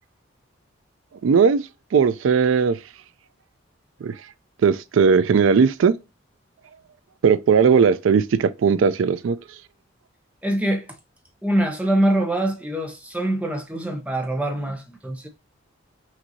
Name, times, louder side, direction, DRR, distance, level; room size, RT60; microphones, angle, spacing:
voice 1, 1.2-1.6 1.9-2.8 4.0-4.2 4.6-6.0 7.2-9.4, right 6 dB, 75° right, 0.4 m, -18 dB
voice 2, 10.4-10.9 11.4-15.3, right 1 dB, 5° right, 0.7 m, -24 dB
5.8 x 2.6 x 2.7 m
head